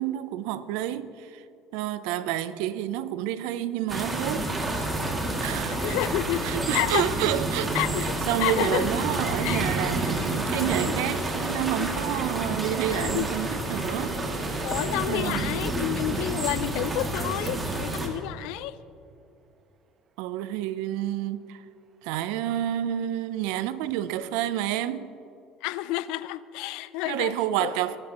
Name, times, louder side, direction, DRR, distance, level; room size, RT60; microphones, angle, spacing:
voice 1, 0.0-1.4 1.7-4.5 4.8-4.9 5.4-6.0 6.4-7.7 8.0-14.2 15.1-15.6 20.2-21.6 22.0-25.1 27.0-28.0, right 12 dB, 80° right, 0.6 m, -29 dB
sound 1, 3.9-18.1, right 2 dB, 20° right, 2.4 m, -29 dB
voice 2, 5.8-6.5 6.7-7.1 7.7-8.9 9.4-9.6 10.0-10.2 10.8-11.0 11.8-11.9 12.9-13.3 13.7-13.9 14.6-18.8 25.6-27.3 27.6-27.7, left 16 dB, 75° left, 0.4 m, -30 dB
sound 2, 9.1-18.3 23.8-24.2, right 6 dB, 50° right, 1.0 m, -41 dB
21.5 x 11.0 x 3.0 m
supercardioid pair, 95°, 0 cm